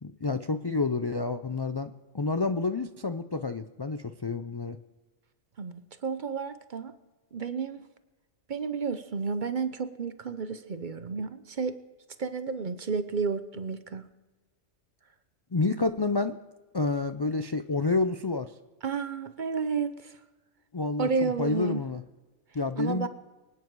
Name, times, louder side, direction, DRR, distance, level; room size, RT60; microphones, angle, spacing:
voice 1, 0.0-4.8 15.5-16.4 16.7-18.5 20.7-22.0 22.5-23.1, left 3 dB, 40° left, 9 dB, 0.3 m, -29 dB
voice 2, 5.6-6.9 7.3-7.8 8.5-11.8 12.2-14.0 18.8-20.1 21.0-21.8 22.8-23.1, right 5 dB, 45° right, 11 dB, 0.8 m, -31 dB
24.0 x 9.5 x 4.7 m, 1.2 s
omnidirectional pair, 1.3 m